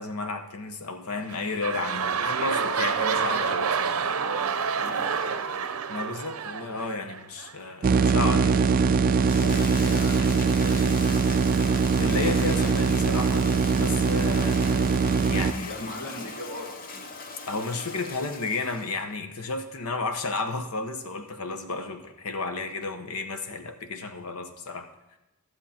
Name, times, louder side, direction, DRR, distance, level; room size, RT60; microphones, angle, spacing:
voice 1, 0.0-4.0 5.9-8.6 12.0-13.5 13.8-14.9 15.3-15.7 17.5-24.9, left 3 dB, 80° left, 6 dB, 1.0 m, -32 dB
sound 1, 1.2-7.5 8.2-8.3, right 6 dB, 75° right, 0.6 m, -28 dB
voice 2, 4.2-5.6 8.1-8.6 9.4-10.9 15.7-17.0, left 1 dB, 55° left, -6 dB, 3.1 m, -40 dB
sound 2, 7.8-15.5, right 5 dB, 40° right, 0.3 m, -22 dB
Toilet flush, 8.0-19.1, left 3 dB, 40° left, 0.7 m, -39 dB
12.5 x 7.2 x 4.3 m, 0.95 s
head